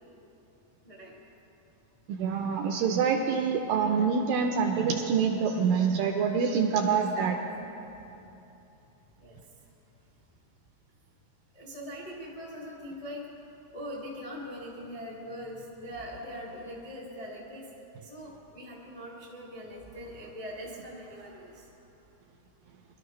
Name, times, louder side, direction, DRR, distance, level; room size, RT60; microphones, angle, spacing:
voice 1, 2.1-7.4, right 6 dB, 80° right, 3 dB, 2.1 m, -26 dB
voice 2, 11.5-13.2 13.7-17.6 18.0-21.7, equal, 25° left, -5 dB, 0.7 m, -42 dB
23.5 x 12.5 x 3.1 m, 2.9 s
omnidirectional pair, 4.6 m